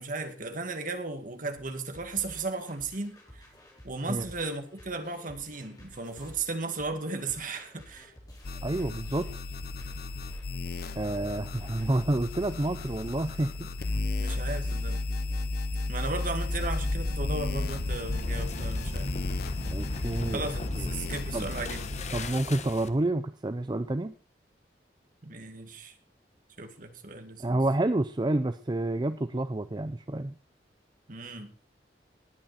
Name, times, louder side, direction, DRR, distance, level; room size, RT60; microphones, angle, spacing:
voice 1, 0.0-3.4 3.8-8.1 14.2-15.0 15.9-19.1 20.3-22.0 25.2-25.9 26.6-27.6 31.1-31.5, right 3 dB, 50° right, 6 dB, 2.2 m, -35 dB
sound 1, 1.6-15.9, equal, 20° left, 4.6 m, -52 dB
sound 2, 8.4-22.3, left 3 dB, 60° left, 1.0 m, -34 dB
voice 2, 8.6-9.3 11.0-14.1 19.7-20.5 20.8-20.9 21.3-21.7 22.1-24.1 27.4-30.4, right 2 dB, 25° right, 11 dB, 0.6 m, -29 dB
sound 3, 16.3-23.1, left 1 dB, 40° left, 1.2 m, -35 dB
19.0 x 9.1 x 4.3 m, 0.35 s
head